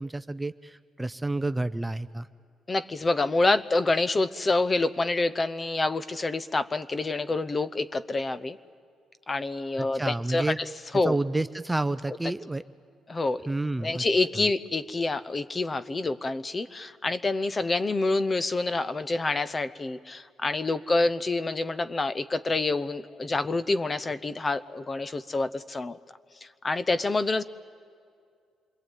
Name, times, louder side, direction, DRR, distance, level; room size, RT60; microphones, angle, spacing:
voice 1, 0.0-2.3 9.8-10.6 11.0-12.6 13.5-14.1, right 2 dB, 10° right, 12 dB, 0.6 m, -29 dB
voice 2, 2.7-8.6 9.3-10.6 10.9-11.2 13.1-13.4 13.8-26.0 26.4-27.4, left 3 dB, 30° left, 14 dB, 0.8 m, -27 dB
27.5 x 22.0 x 9.2 m, 2.2 s
cardioid pair, 90°, 0 cm